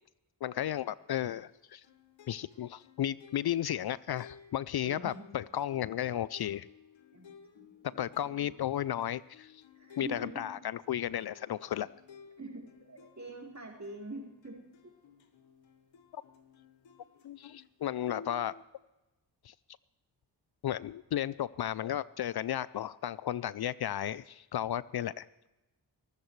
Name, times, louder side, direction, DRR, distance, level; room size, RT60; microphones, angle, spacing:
voice 1, 0.4-1.8 2.3-6.7 8.0-9.6 10.0-11.9 16.1-16.2 17.2-18.5 19.4-19.5 20.6-25.3, left 11 dB, 60° left, 19 dB, 0.5 m, -34 dB
sound 1, 0.5-17.7 18.1-18.6, left 5 dB, 85° left, 1.3 m, -57 dB
voice 2, 4.8-5.3 7.1-7.3 7.5-7.7 7.9-8.5 9.7-10.5 12.4-14.6 14.8-14.9, right 2 dB, 40° right, -2 dB, 4.6 m, -45 dB
22.5 x 13.5 x 3.2 m, 1.0 s
cardioid pair, 40°, 45 cm